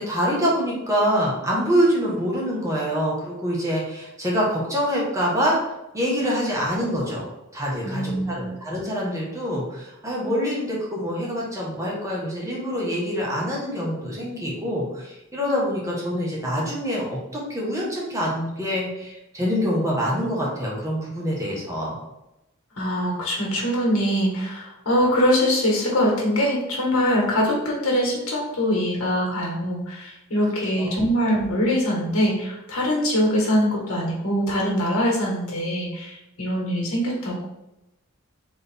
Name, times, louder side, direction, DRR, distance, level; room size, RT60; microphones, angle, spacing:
voice 1, 0.0-5.6 5.9-7.3 7.5-22.0 30.8-30.9, equal, 15° right, -5 dB, 1.2 m, -25 dB
voice 2, 7.8-8.5 22.7-37.4, equal, 80° left, -3 dB, 1.6 m, -23 dB
4.1 x 3.7 x 3.5 m, 0.92 s
head